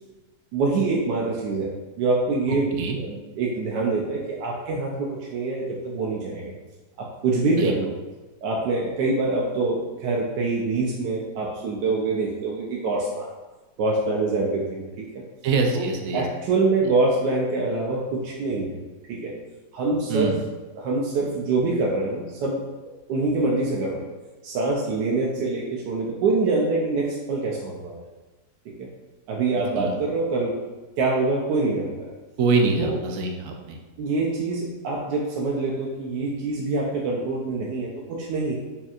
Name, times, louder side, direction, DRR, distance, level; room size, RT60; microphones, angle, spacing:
voice 1, 0.5-6.5 7.0-7.9 8.4-13.3 13.8-15.2 15.7-18.7 19.1-19.3 19.7-20.4 20.8-22.6 23.1-24.1 24.4-28.0 28.8-28.9 29.3-30.7 31.0-32.1 32.8-33.0 34.0-37.9 38.2-38.6, right 3 dB, 85° right, -3 dB, 1.2 m, -25 dB
voice 2, 15.4-16.2 20.1-20.4 29.7-29.9 32.4-33.8, right 4 dB, 70° right, 2 dB, 0.8 m, -24 dB
4.3 x 3.5 x 2.4 m, 1.2 s
omnidirectional pair, 1.8 m